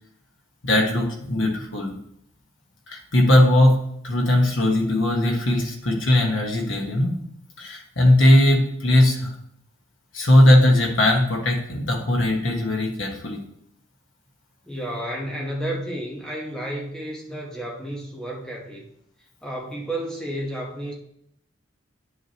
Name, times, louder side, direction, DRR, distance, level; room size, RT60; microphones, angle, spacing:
voice 1, 0.6-2.0 2.9-7.1 7.6-9.3 10.1-13.4, left 1 dB, 70° left, 0 dB, 1.5 m, -19 dB
voice 2, 14.7-18.9 19.4-20.9, right 1 dB, 5° left, -3 dB, 1.3 m, -31 dB
9.6 x 6.4 x 3.1 m, 0.72 s
head